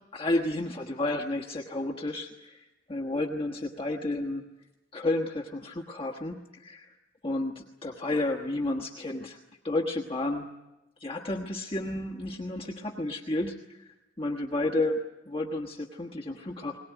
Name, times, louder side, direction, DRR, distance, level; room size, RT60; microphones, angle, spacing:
voice 1, 0.1-4.4 4.9-7.0 7.2-9.4 9.6-10.5 11.0-16.8, left 2 dB, 30° left, 1 dB, 1.3 m, -31 dB
21.5 x 19.5 x 9.1 m, 0.99 s
head